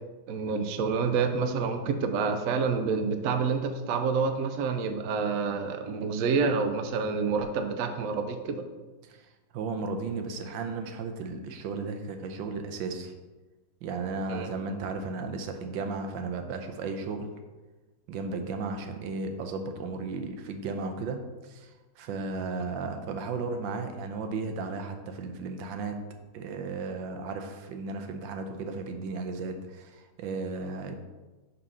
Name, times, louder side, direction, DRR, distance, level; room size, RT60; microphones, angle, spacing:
voice 1, 0.3-8.7 14.3-14.5, right 5 dB, 70° right, 7 dB, 0.8 m, -28 dB
voice 2, 9.0-13.1 13.8-17.3 18.1-26.0 26.3-30.9, right 4 dB, 85° right, 6 dB, 1.4 m, -35 dB
5.4 x 4.2 x 5.4 m, 1.2 s
omnidirectional pair, 2.0 m